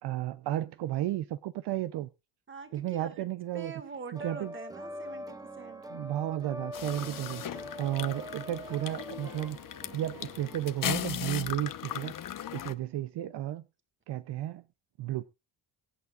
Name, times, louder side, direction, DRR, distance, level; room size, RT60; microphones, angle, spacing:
voice 1, 0.0-2.1 2.7-3.7 4.1-4.5 5.9-7.4 7.8-9.6 9.9-12.1 12.5-13.7 14.1-14.6 15.0-15.3, right 13 dB, 65° right, 0.6 m, -33 dB
voice 2, 2.5-3.3 3.5-5.8, right 5 dB, 30° right, 1.9 m, -44 dB
sound 1, 4.1-11.7, equal, 10° right, 0.9 m, -44 dB
sound 2, 6.7-12.7, left 10 dB, 50° left, 1.0 m, -37 dB
23.5 x 8.3 x 2.4 m
cardioid pair, 120°, 43 cm